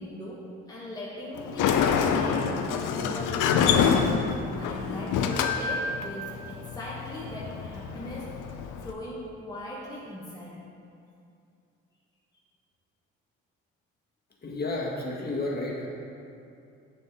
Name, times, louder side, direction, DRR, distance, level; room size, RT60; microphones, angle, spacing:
voice 1, 0.0-8.4 8.8-10.6, left 1 dB, 10° left, -6 dB, 1.3 m, -39 dB
Sliding door, 1.3-8.9, left 6 dB, 75° left, 0.6 m, -27 dB
voice 2, 14.4-15.9, left 2 dB, 30° left, -3 dB, 1.8 m, -31 dB
7.9 x 6.9 x 3.6 m, 2.6 s
supercardioid pair, 55°, 32 cm